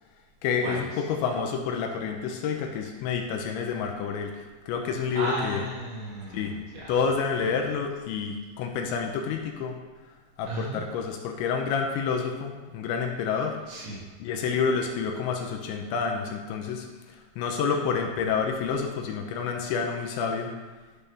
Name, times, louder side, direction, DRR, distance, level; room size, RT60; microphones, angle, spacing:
voice 1, 0.4-5.6 6.3-6.5 6.9-9.8 10.4-13.6 14.2-16.9 17.4-20.5, left 6 dB, 80° left, 3 dB, 2.9 m, -29 dB
voice 2, 5.1-6.9 10.4-10.8 13.7-14.0, right 1 dB, 90° right, -6 dB, 5.1 m, -34 dB
12.0 x 7.0 x 3.4 m, 1.3 s
omnidirectional pair, 5.6 m